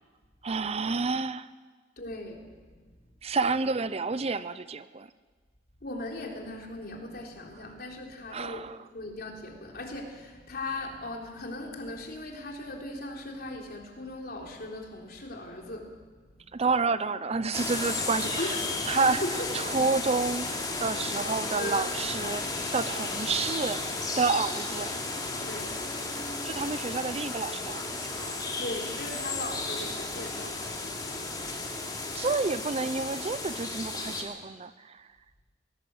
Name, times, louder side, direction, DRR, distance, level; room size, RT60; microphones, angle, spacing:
voice 1, 0.4-1.5 3.2-5.1 8.3-8.8 16.5-18.6 18.9-19.2 19.5-22.4 22.7-23.8 24.2-24.9 26.4-28.1 32.1-35.1, right 4 dB, 35° right, 14 dB, 0.6 m, -29 dB
voice 2, 2.0-2.8 5.8-16.4 18.4-18.6 19.1-19.3 21.2-21.9 25.4-25.8 28.6-30.7 31.4-31.5, left 2 dB, 60° left, 1 dB, 3.6 m, -39 dB
sound 1, 17.5-34.2, left 3 dB, 25° left, 3.0 m, -34 dB
20.5 x 17.5 x 7.9 m, 1.4 s
head